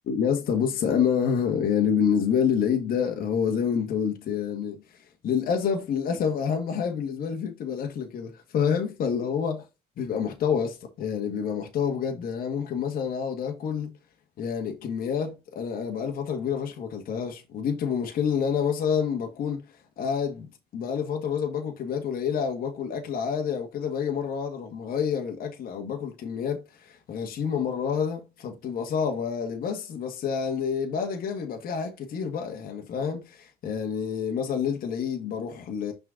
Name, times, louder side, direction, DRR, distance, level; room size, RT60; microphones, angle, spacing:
voice 1, 0.1-9.6 10.0-13.9 14.4-19.6 20.0-20.5 20.7-35.9, left 7 dB, 60° left, 1.6 m, -28 dB
6.1 x 4.3 x 3.8 m
cardioid pair, 110°, 17 cm